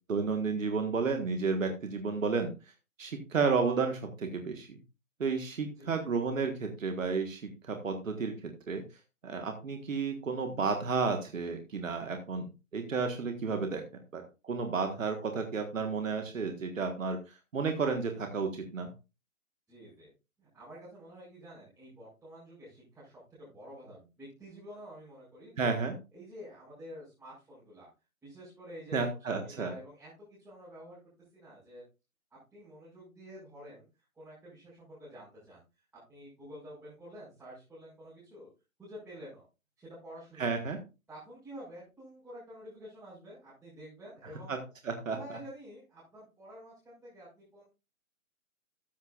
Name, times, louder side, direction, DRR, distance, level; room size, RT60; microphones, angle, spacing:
voice 1, 0.1-2.5 3.0-4.8 5.2-8.8 9.2-12.5 12.7-13.8 14.1-18.9 25.6-25.9 28.9-29.7 40.4-40.8 44.5-44.6 44.9-45.4, right 4 dB, 65° right, 5 dB, 1.7 m, -32 dB
voice 2, 19.7-20.1 20.4-25.7 26.1-27.9 28.2-31.0 31.3-31.8 32.5-33.9 34.1-38.5 38.8-39.4 39.8-40.7 41.1-44.6 45.1-47.6, equal, 5° right, -11 dB, 6.2 m, -49 dB
14.0 x 8.2 x 2.5 m, 0.29 s
figure-of-eight pair, 140°, 42 cm